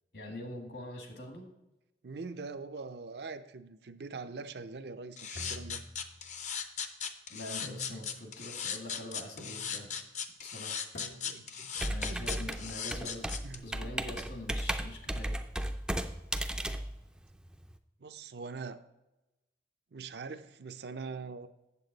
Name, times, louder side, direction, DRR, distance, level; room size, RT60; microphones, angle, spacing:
voice 1, 0.1-1.5 7.3-9.9 10.4-10.9 11.8-13.3 13.6-15.4, left 1 dB, 70° left, 2 dB, 1.9 m, -44 dB
voice 2, 2.0-5.8 11.2-12.5 13.4-13.6 18.0-18.8 19.9-21.5, right 4 dB, 65° right, 9 dB, 0.5 m, -43 dB
sound 1, 5.2-13.6, left 7 dB, 40° left, 0.6 m, -38 dB
sound 2, 5.3-6.5 7.6-8.4 9.4-10.0 10.9-11.6, left 1 dB, 90° left, 1.3 m, -48 dB
Computer keyboard, 11.8-17.7, right 1 dB, 5° right, 0.4 m, -35 dB
8.4 x 7.5 x 3.9 m, 0.98 s
head